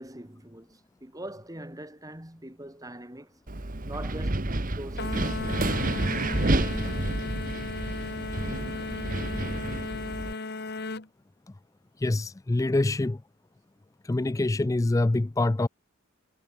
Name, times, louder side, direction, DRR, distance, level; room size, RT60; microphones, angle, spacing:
voice 1, 0.0-3.4 3.8-4.4 4.7-5.4, right 1 dB, 15° right, 3.1 m, -42 dB
Wind, 3.5-10.3, right 2 dB, 40° right, 1.4 m, -29 dB
sound 1, 5.0-11.1, left 3 dB, 50° left, 1.5 m, -36 dB
voice 2, 12.0-13.2 14.0-15.7, left 2 dB, 15° left, 0.3 m, -25 dB
head